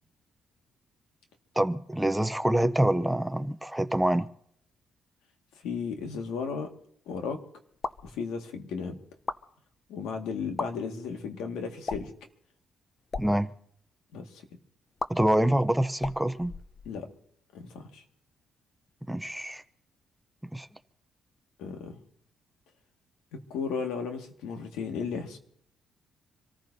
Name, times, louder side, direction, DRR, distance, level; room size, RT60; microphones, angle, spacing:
voice 1, 1.6-4.3 13.2-13.5 15.1-16.5 19.1-19.6 20.5-20.7, right 1 dB, 5° right, 0.7 m, -26 dB
voice 2, 5.6-6.7 7.1-7.4 8.0-9.0 9.9-12.1 14.1-14.4 16.9-17.1 17.5-18.0 21.6-22.0 23.3-25.4, left 5 dB, 90° left, 1.9 m, -34 dB
sound 1, 7.7-8.1 9.1-9.4 10.4-10.7 11.8-12.2 13.0-13.3 15.0-15.1 16.0-17.1, left 3 dB, 35° left, 0.7 m, -35 dB
26.5 x 14.5 x 2.8 m
cardioid pair, 90°, 0 cm